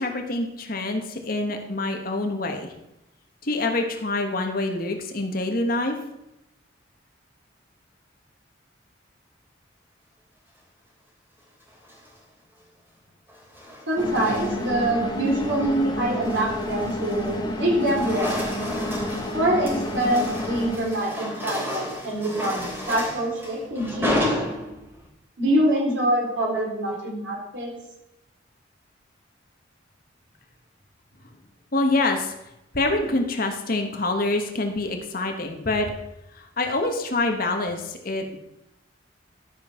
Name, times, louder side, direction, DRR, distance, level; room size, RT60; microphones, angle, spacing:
voice 1, 0.0-2.7 3.4-6.0 31.7-32.3 32.7-35.9 36.3-38.4, left 2 dB, 50° left, 4 dB, 1.4 m, -26 dB
sound 1, 11.7-12.2 13.3-14.8 15.3-15.6 16.0-17.5 17.7-25.1, equal, 10° right, 3.1 m, -32 dB
voice 2, 13.9-18.4 19.3-24.3 25.4-27.7, right 1 dB, 75° right, -3 dB, 4.3 m, -25 dB
sound 2, 14.0-20.8, left 1 dB, 20° left, 1.2 m, -30 dB
12.5 x 5.4 x 5.8 m, 0.87 s
head